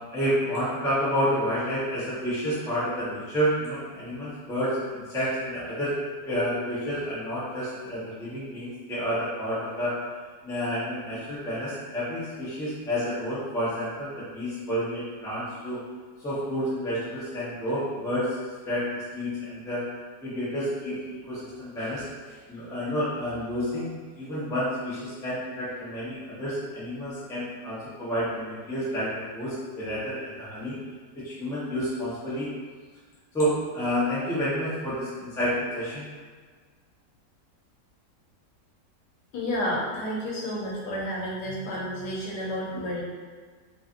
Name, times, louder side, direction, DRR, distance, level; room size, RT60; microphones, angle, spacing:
voice 1, 0.1-5.9 6.2-9.9 10.4-15.8 16.2-18.4 18.6-19.8 20.2-21.0 21.3-30.8 31.1-32.5 33.3-36.1, equal, 5° left, -10 dB, 0.4 m, -30 dB
voice 2, 39.3-43.0, equal, 85° left, -4 dB, 1.3 m, -31 dB
3.1 x 2.6 x 2.5 m, 1.5 s
omnidirectional pair, 1.7 m